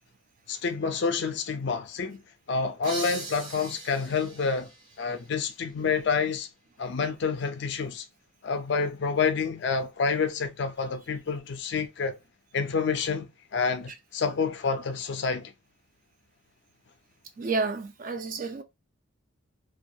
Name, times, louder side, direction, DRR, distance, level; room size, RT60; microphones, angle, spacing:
voice 1, 0.5-2.2 2.5-4.7 5.0-6.5 6.8-8.0 8.4-12.2 12.5-15.5, left 5 dB, 55° left, 0.4 m, -28 dB
sound 1, 2.8-6.3, right 2 dB, 75° right, 0.9 m, -41 dB
voice 2, 17.4-18.6, right 3 dB, 40° right, 0.3 m, -30 dB
2.3 x 2.2 x 2.6 m
head